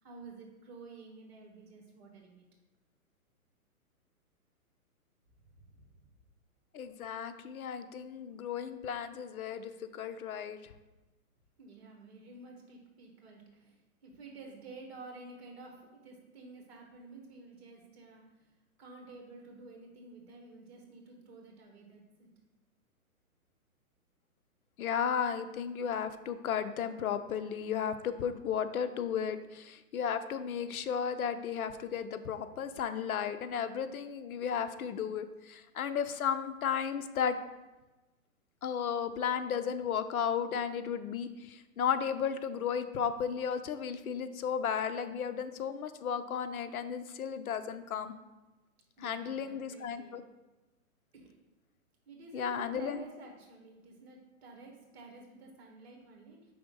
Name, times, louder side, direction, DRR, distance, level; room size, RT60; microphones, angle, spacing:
voice 1, 0.0-2.5 5.5-6.0 11.6-22.3 49.0-50.2 51.1-51.4 52.1-56.5, right 3 dB, 45° right, 1 dB, 1.5 m, -51 dB
voice 2, 6.7-10.7 24.8-37.4 38.6-48.1 49.0-50.2 52.3-53.0, left 7 dB, 75° left, 10 dB, 0.6 m, -34 dB
5.1 x 3.5 x 5.3 m, 1.1 s
hypercardioid pair, 165°, 44 cm